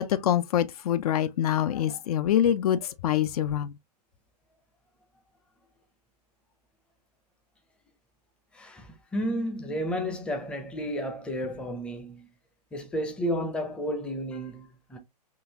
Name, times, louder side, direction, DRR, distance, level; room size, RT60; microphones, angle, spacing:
voice 1, 0.0-3.7, left 10 dB, 65° left, 0.4 m, -25 dB
voice 2, 8.5-12.3 12.7-15.0, equal, 5° left, 0.5 m, -32 dB
3.8 x 2.4 x 2.7 m
hypercardioid pair, 140°, 21 cm